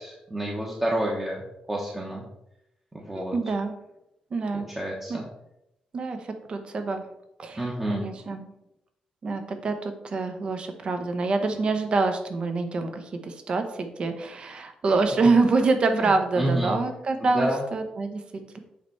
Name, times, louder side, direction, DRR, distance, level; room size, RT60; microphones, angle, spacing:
voice 1, 0.0-1.4 1.7-2.2 2.9-3.3 4.5-5.2 7.6-8.0 15.9-16.7 17.2-17.6, right 1 dB, 15° right, -3 dB, 1.1 m, -29 dB
voice 2, 3.1-3.7 4.3-4.7 5.1-5.2 5.9-7.0 7.4-8.5 9.2-18.6, right 3 dB, 45° right, 7 dB, 0.9 m, -26 dB
8.0 x 3.2 x 4.6 m, 0.85 s
cardioid pair, 120°, 2 cm